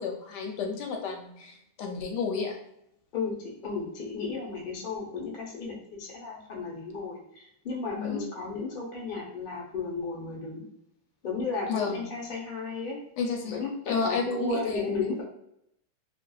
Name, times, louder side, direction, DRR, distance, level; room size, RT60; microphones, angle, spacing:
voice 1, 0.0-2.6 7.9-8.3 11.7-12.1 13.2-14.8, left 5 dB, 75° left, 3 dB, 1.1 m, -32 dB
voice 2, 3.6-10.7 11.2-13.0 13.4-15.2, left 4 dB, 50° left, -3 dB, 0.6 m, -34 dB
2.8 x 2.5 x 2.3 m, 0.76 s
omnidirectional pair, 2.0 m